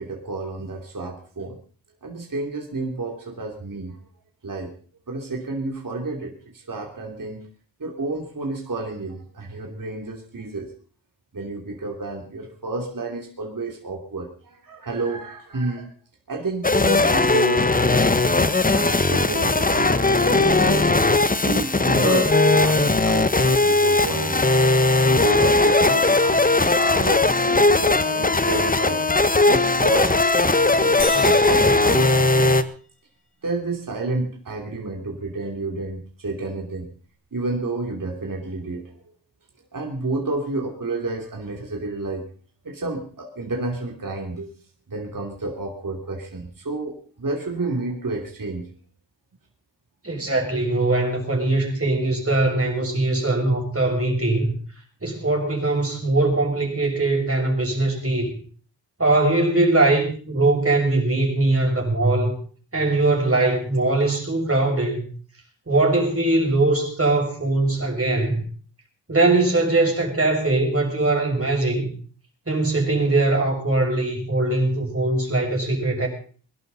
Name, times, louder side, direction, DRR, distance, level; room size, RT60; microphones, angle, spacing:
voice 1, 0.0-1.6 2.0-4.0 4.4-4.7 5.1-6.3 6.7-7.4 7.8-10.7 11.3-14.3 14.6-15.9 16.3-18.1 18.7-20.8 21.5-24.4 25.2-26.4 26.7-29.0 29.5-30.1 30.7-32.6 33.4-36.9 37.3-38.9 39.7-42.2 42.6-44.5 44.9-48.7, right 3 dB, 45° right, 1 dB, 3.0 m, -30 dB
sound 1, 16.6-32.6, left 2 dB, 20° left, 1.0 m, -18 dB
sound 2, 31.0-32.9, left 3 dB, 60° left, 4.9 m, -35 dB
voice 2, 50.0-54.5 55.0-58.3 59.0-62.3 62.7-65.1 65.7-68.4 69.1-71.9 72.5-76.1, right 2 dB, 30° right, 0 dB, 6.5 m, -21 dB
22.0 x 12.0 x 4.1 m, 0.41 s
wide cardioid pair, 75°, 44 cm